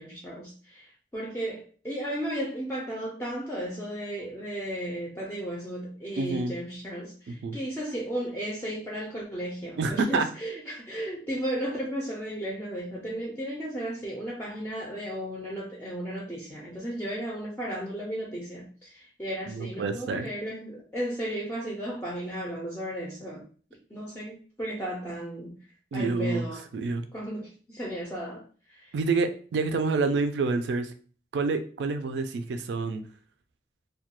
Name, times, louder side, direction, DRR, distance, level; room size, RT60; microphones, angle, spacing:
voice 1, 0.0-23.5 23.9-25.6 25.9-26.7 27.1-28.4 28.7-28.9, right 1 dB, 10° left, -3 dB, 0.4 m, -34 dB
voice 2, 6.2-6.5 7.3-7.6 9.8-10.3 19.5-20.3 25.9-26.5 26.7-27.0 28.9-30.9 31.3-33.0, right 3 dB, 80° right, 8 dB, 0.3 m, -28 dB
2.2 x 2.2 x 2.9 m, 0.41 s
head